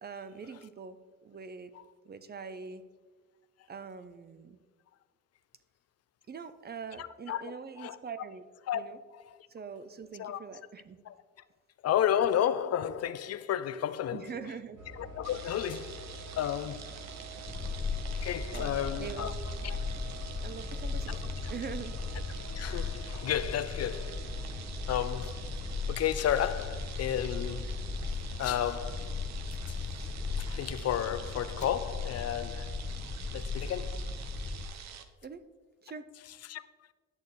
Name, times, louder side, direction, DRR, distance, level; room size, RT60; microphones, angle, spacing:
voice 1, 0.0-1.7 2.0-2.8 3.7-4.6 6.3-8.4 8.7-9.0 9.5-11.0 14.1-14.8 18.5-19.3 20.4-22.0 35.2-35.4 35.8-36.1, right 6 dB, 35° right, 0.6 m, -43 dB
voice 2, 7.0-8.0 8.7-8.8 9.1-9.5 10.2-10.4 11.1-11.2 11.8-14.4 15.0-17.1 18.1-19.3 19.6-20.1 21.1-21.2 21.4-21.5 22.5-24.3 24.9-25.6 25.9-27.8 28.4-29.2 29.7-29.8 30.4-32.9 33.3-34.1 36.4-36.9, left 10 dB, 55° left, 0.5 m, -33 dB
sound 1, 14.8-33.7, equal, 85° right, 2.5 m, -47 dB
sound 2, 15.2-35.1, right 8 dB, 65° right, 0.9 m, -48 dB
sound 3, 17.5-34.6, left 4 dB, 25° left, 0.8 m, -37 dB
10.5 x 6.5 x 4.1 m
cardioid pair, 90°, 30 cm